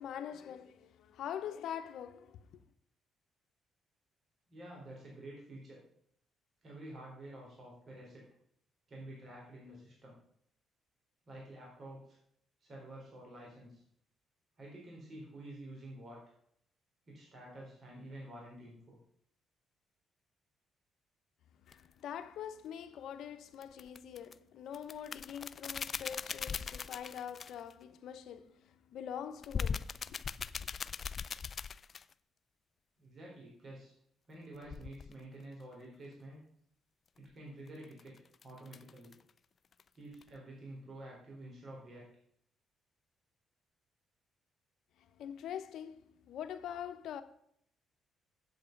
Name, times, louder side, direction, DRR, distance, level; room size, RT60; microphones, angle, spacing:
voice 1, 0.0-2.6 21.6-30.5 45.0-47.2, left 9 dB, 75° left, 0.8 m, -44 dB
voice 2, 4.5-5.8 6.6-8.3 8.9-10.2 11.3-12.2 12.6-13.8 14.6-16.2 17.1-19.0 33.0-33.9 34.3-36.4 37.2-38.1 38.4-39.2 39.9-42.1, right 1 dB, 50° right, 3.8 m, -49 dB
sound 1, 21.7-21.9 23.6-24.3 24.7-27.7 29.4-32.1 34.6-35.2 37.7-39.3 39.7-39.8 40.1-40.4, left 6 dB, 45° left, 0.3 m, -40 dB
8.0 x 7.8 x 5.2 m
cardioid pair, 90°, 0 cm